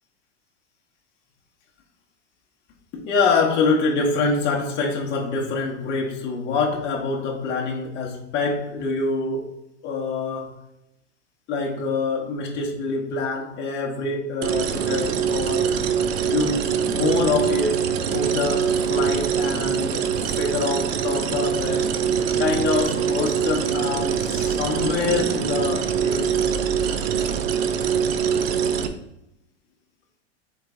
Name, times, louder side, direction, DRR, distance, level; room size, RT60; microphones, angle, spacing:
voice 1, 2.9-9.5 9.8-10.6 11.5-15.8 16.2-17.8 18.1-20.1 20.4-21.9 22.4-26.4, left 4 dB, 30° left, 0.7 m, -25 dB
sound 1, 14.4-28.9, right 7 dB, 60° right, 0.5 m, -23 dB
4.0 x 3.1 x 3.5 m
hypercardioid pair, 120°, 34 cm